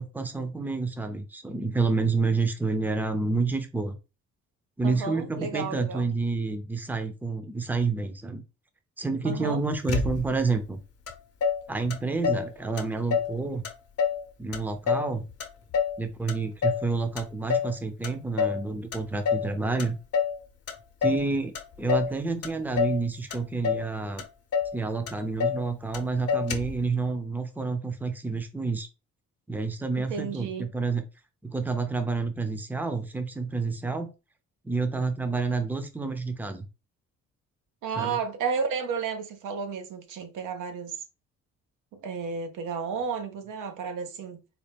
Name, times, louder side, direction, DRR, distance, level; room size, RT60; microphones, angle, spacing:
voice 1, 0.0-4.0 4.8-8.4 9.0-10.8 11.7-13.6 14.4-15.2 16.0-20.0 21.0-24.2 24.7-28.9 29.5-31.0 31.4-34.1 34.6-36.7 38.0-38.2, right 3 dB, 5° right, 0.6 m, -29 dB
voice 2, 4.8-6.1 9.2-9.6 30.0-30.7 37.8-41.0 41.9-44.4, right 5 dB, 85° right, 0.8 m, -32 dB
Motor vehicle (road), 9.9-10.5 11.1-11.2 11.4-12.5 12.8-13.4 13.6-14.2 14.5-16.0 16.3-16.9 17.2-17.7 18.0-18.6 18.9-19.5 19.8-20.4 20.7-21.3 21.5-22.1 22.4-23.0 23.3-23.9 24.2-24.3 24.5-24.8 25.1-25.6 25.9-26.0 26.3-26.8, left 6 dB, 55° left, 0.8 m, -27 dB
4.2 x 2.1 x 3.4 m
cardioid pair, 90°, 30 cm